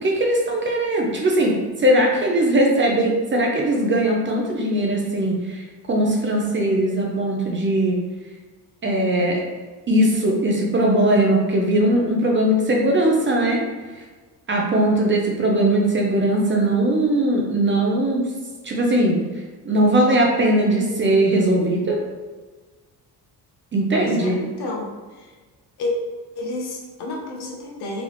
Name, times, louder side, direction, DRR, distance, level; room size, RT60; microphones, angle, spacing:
voice 1, 0.0-8.0 8.8-9.4 9.9-13.6 14.5-18.2 18.6-19.2 19.6-22.0 23.7-24.4, right 1 dB, 30° right, -1 dB, 0.7 m, -20 dB
voice 2, 23.9-24.9 25.2-25.3 25.8-25.9 26.4-28.0, left 2 dB, 65° left, -1 dB, 1.1 m, -30 dB
3.9 x 3.7 x 3.1 m, 1.3 s
cardioid pair, 145°, 41 cm